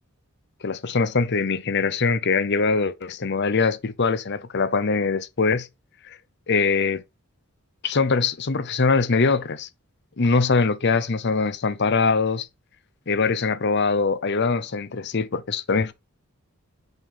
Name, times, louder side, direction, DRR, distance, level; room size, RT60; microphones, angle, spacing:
voice 1, 0.6-5.7 6.1-6.2 6.5-7.0 7.8-9.7 10.2-12.5 13.1-15.9, left 4 dB, 50° left, 0.7 m, -22 dB
5.4 x 5.4 x 5.6 m
head